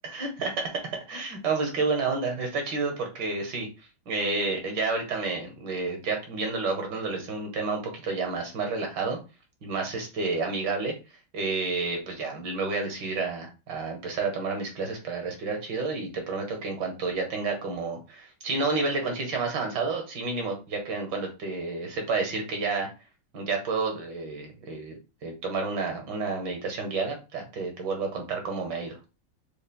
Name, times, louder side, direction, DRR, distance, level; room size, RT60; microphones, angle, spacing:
voice 1, 0.0-0.5 1.1-3.7 4.1-9.2 9.6-10.9 11.3-22.9 23.3-29.0, right 3 dB, 65° right, 3 dB, 1.5 m, -30 dB
5.4 x 2.1 x 2.2 m, 0.30 s
omnidirectional pair, 2.2 m